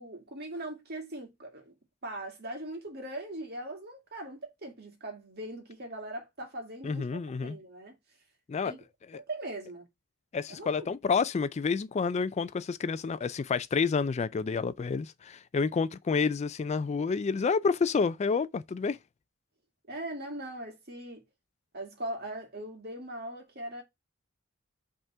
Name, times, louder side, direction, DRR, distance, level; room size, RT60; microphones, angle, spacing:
voice 1, 0.0-1.7 2.0-8.0 8.6-8.8 9.1-9.9 10.5-10.9 19.9-21.2 21.7-23.8, right 1 dB, 50° right, 2.2 m, -40 dB
voice 2, 6.8-7.6 8.5-8.7 10.3-19.0, left 5 dB, 35° left, 0.3 m, -29 dB
5.4 x 3.7 x 5.5 m
head